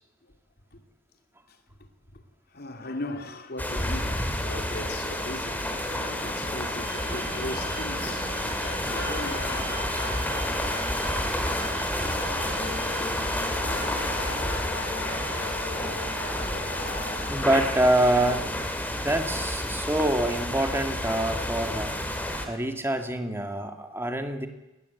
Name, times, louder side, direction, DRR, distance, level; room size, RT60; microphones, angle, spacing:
voice 1, 1.5-2.2 2.5-9.5 11.0-13.7 14.1-15.4 15.9-16.6, left 2 dB, 55° left, 2.6 m, -41 dB
sound 1, 3.6-22.5, left 1 dB, 10° left, 3.1 m, -30 dB
sound 2, 5.8-5.9 6.2-19.3, left 2 dB, 90° left, 7.2 m, -39 dB
sound 3, 6.8-13.4, right 4 dB, 40° right, 6.3 m, -42 dB
voice 2, 11.3-12.1 12.4-12.6 16.1-16.3 17.3-18.6 18.9-21.9 22.5-24.5, right 1 dB, 15° right, 2.0 m, -26 dB
20.0 x 19.5 x 8.5 m
head